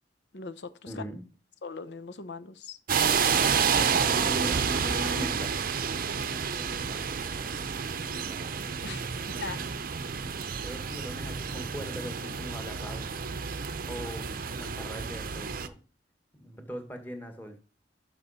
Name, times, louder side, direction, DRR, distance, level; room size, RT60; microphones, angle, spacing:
voice 1, 0.3-1.0 1.6-2.8 8.8-9.7, left 4 dB, 70° left, 14 dB, 0.8 m, -40 dB
voice 2, 0.9-1.2 4.1-8.5 9.2-10.1 10.6-13.1 13.9-15.8 16.3-17.6, equal, 10° left, 5 dB, 1.6 m, -41 dB
sound 1, 2.9-15.7, right 6 dB, 55° right, 0.6 m, -30 dB
12.0 x 6.1 x 4.2 m, 0.36 s
head